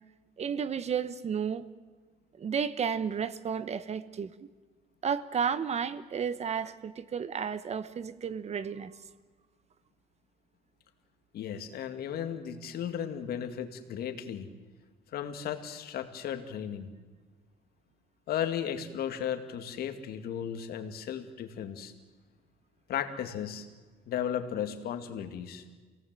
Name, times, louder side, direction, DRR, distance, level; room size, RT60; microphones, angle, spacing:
voice 1, 0.4-1.6 2.4-4.3 5.0-8.9, right 7 dB, 40° right, 14 dB, 1.1 m, -32 dB
voice 2, 11.3-14.5 15.1-16.9 18.3-21.9 22.9-23.7 24.1-25.6, left 9 dB, 65° left, 7 dB, 2.3 m, -35 dB
28.5 x 18.0 x 7.7 m, 1.4 s
cardioid pair, 110°, 17 cm